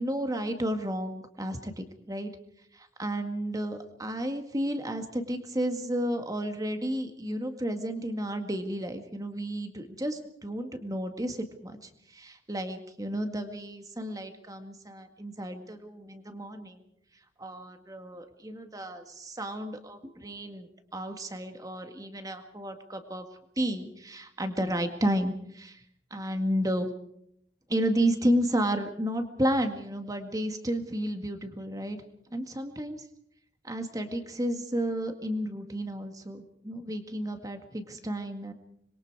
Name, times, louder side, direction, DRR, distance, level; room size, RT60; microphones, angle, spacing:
voice 1, 0.0-2.3 2.7-16.8 17.4-23.3 23.6-25.8 26.1-26.9 27.7-32.0 32.3-33.1 33.6-38.5, equal, 20° right, 6 dB, 1.9 m, -32 dB
26.0 x 22.0 x 4.8 m, 0.72 s
head